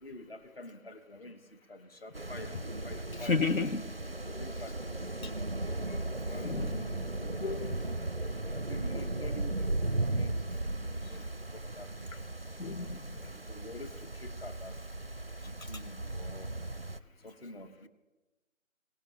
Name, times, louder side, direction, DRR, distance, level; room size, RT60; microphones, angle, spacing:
voice 1, 0.0-3.4 4.2-5.4 6.2-7.6 8.5-9.7 10.0-10.4 10.8-12.3 13.1-14.8 15.4-16.5 17.2-17.9, left 1 dB, 45° left, 9 dB, 1.0 m, -47 dB
sound 1, 2.1-17.0, right 2 dB, 45° right, 0.5 m, -36 dB
voice 2, 3.2-3.8 5.2-5.3 5.9-6.0 6.4-6.8 7.4-7.8 11.1-11.3 12.6-13.2 15.6-15.7, left 4 dB, 75° left, 10 dB, 0.8 m, -32 dB
23.5 x 18.0 x 2.9 m, 1.1 s
figure-of-eight pair, 175°, 41 cm